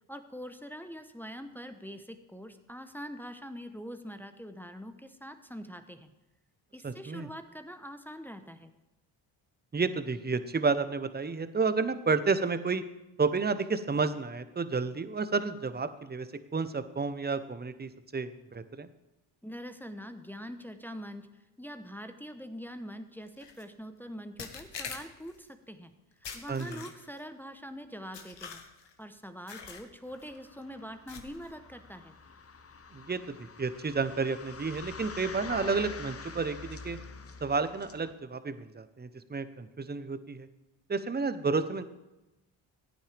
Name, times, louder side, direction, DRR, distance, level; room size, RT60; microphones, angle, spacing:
voice 1, 0.1-6.1 6.7-8.7 19.4-21.3 21.6-25.9 26.3-28.6 29.0-32.1, equal, 5° left, 8 dB, 0.9 m, -44 dB
voice 2, 6.8-7.3 9.7-12.8 13.2-18.9 26.5-26.8 32.9-37.0 37.4-40.5 40.9-41.8, right 4 dB, 20° right, 12 dB, 0.9 m, -31 dB
sound 1, 23.4-23.6 24.4-25.4 26.2-27.2 28.1-28.9 29.5-29.9 30.2-30.4 31.1-31.5, left 6 dB, 55° left, 1.6 m, -44 dB
sound 2, 30.1-38.1, left 5 dB, 30° left, 1.0 m, -46 dB
15.0 x 9.0 x 3.5 m, 1.0 s
supercardioid pair, 50°, 49 cm